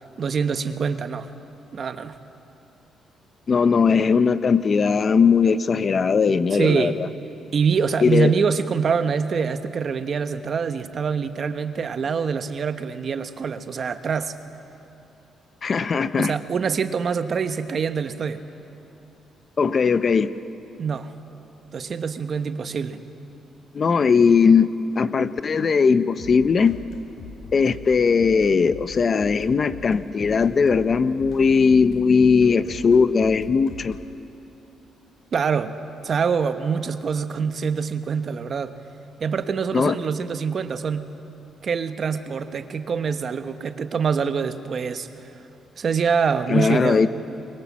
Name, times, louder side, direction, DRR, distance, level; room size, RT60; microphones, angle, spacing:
voice 1, 0.2-1.3 1.7-2.2 6.5-7.0 7.5-14.3 16.2-18.4 20.8-21.1 21.7-23.0 35.3-35.8 36.0-38.8 39.2-41.0 41.6-45.3 45.8-47.1, right 6 dB, 45° right, 9 dB, 1.1 m, -25 dB
voice 2, 3.5-7.1 8.0-8.3 15.6-16.3 19.6-20.3 23.7-26.8 27.5-34.0 39.7-40.0 46.5-47.1, left 5 dB, 40° left, 13 dB, 0.7 m, -19 dB
sound 1, 26.2-34.0, left 5 dB, 80° left, 2.2 m, -41 dB
24.5 x 22.0 x 7.4 m, 2.9 s
cardioid pair, 120°, 0 cm